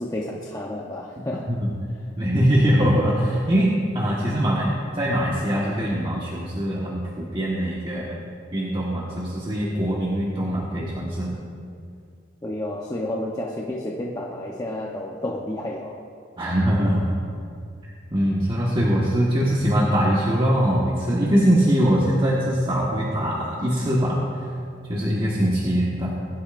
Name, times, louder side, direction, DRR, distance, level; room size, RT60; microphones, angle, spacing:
voice 1, 0.0-1.5 12.4-16.0, left 1 dB, 20° left, -3 dB, 0.9 m, -30 dB
voice 2, 2.2-8.1 8.5-11.3 16.4-17.1 18.1-24.2 24.9-26.1, equal, 25° right, -6 dB, 1.5 m, -22 dB
21.5 x 12.5 x 2.6 m, 2.4 s
head